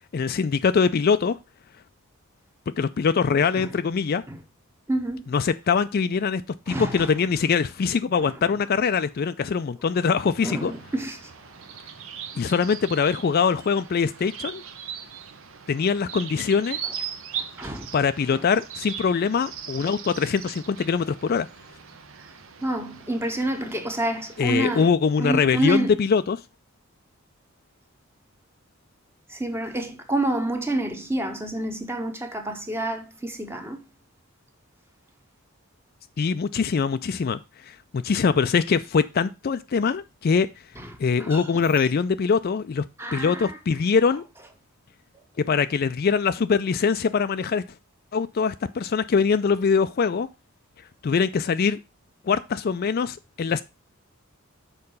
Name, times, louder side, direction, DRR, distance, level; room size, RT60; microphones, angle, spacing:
voice 1, 0.1-1.4 2.8-4.2 5.3-6.4 6.7-10.7 12.4-14.6 15.7-16.8 17.9-21.5 24.4-26.4 36.2-40.5 41.0-42.8 43.1-44.2 45.4-47.6 48.1-50.3 51.0-51.8 52.2-53.6, left 5 dB, 45° left, 0.4 m, -23 dB
voice 2, 4.9-5.2 6.7-7.2 8.1-8.5 10.4-11.3 16.8-16.9 17.3-17.9 18.3-18.4 22.6-26.0 29.3-33.8 40.8-41.7 43.0-43.6 44.1-44.2, right 1 dB, 10° right, 1.0 m, -29 dB
sound 1, 10.5-24.8, right 8 dB, 65° right, 0.9 m, -39 dB
6.7 x 4.8 x 5.3 m
head